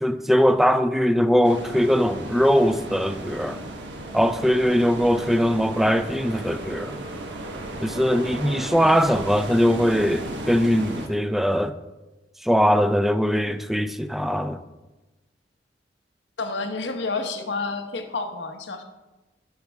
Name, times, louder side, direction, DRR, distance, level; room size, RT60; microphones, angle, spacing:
voice 1, 0.0-3.6 4.1-7.0 7.8-11.7 12.4-14.6, equal, ahead, 0.5 m, -21 dB
sound 1, 1.4-11.1, right 1 dB, 85° right, 1.4 m, -35 dB
voice 2, 16.4-18.8, left 3 dB, 85° left, 1.1 m, -29 dB
14.5 x 6.7 x 3.5 m
head